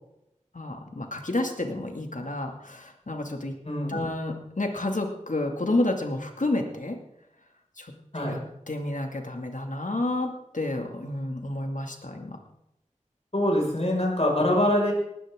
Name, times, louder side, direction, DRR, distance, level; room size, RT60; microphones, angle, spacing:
voice 1, 0.5-3.6 3.9-7.0 7.8-7.9 8.2-8.4 8.7-12.4, left 2 dB, 75° left, 3 dB, 2.4 m, -30 dB
voice 2, 3.6-4.0 8.1-8.4 13.3-14.9, left 1 dB, 55° left, -2 dB, 5.7 m, -24 dB
18.5 x 14.0 x 3.8 m, 0.82 s
wide cardioid pair, 40°, 13 cm